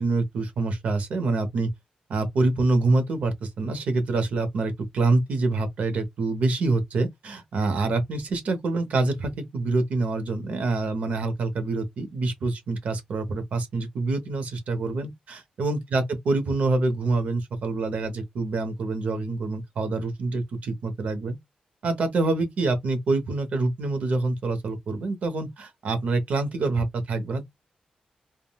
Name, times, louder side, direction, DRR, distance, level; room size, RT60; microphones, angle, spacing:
voice 1, 0.0-1.7 2.1-21.4 21.8-27.4, right 3 dB, 65° right, 0.8 m, -26 dB
3.5 x 2.1 x 2.2 m
wide cardioid pair, 160°, 3 cm